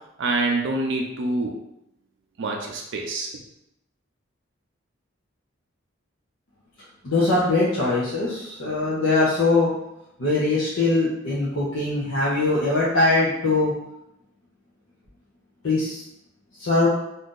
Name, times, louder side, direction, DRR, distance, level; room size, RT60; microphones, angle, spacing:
voice 1, 0.2-1.5 2.4-3.3, right 2 dB, 65° right, 1 dB, 0.4 m, -26 dB
voice 2, 7.0-9.7 10.2-13.7 15.6-16.0 16.6-16.9, left 2 dB, 75° left, -8 dB, 0.7 m, -21 dB
2.7 x 2.4 x 3.6 m, 0.84 s
head